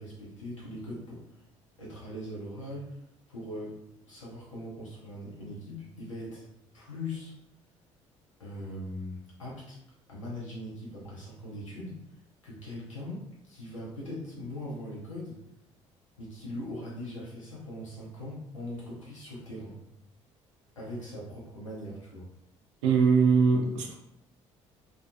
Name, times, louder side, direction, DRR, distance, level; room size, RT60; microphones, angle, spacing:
voice 1, 0.0-1.4 1.8-3.0 3.3-3.8 4.1-6.5 6.7-7.3 8.4-9.8 10.1-12.0 12.4-15.4 16.2-19.8 20.8-22.3, left 1 dB, 85° left, -6 dB, 0.6 m, -40 dB
voice 2, 22.8-23.9, right 5 dB, 70° right, 0 dB, 0.5 m, -22 dB
2.6 x 2.3 x 2.5 m, 0.82 s
figure-of-eight pair, 50°, 16 cm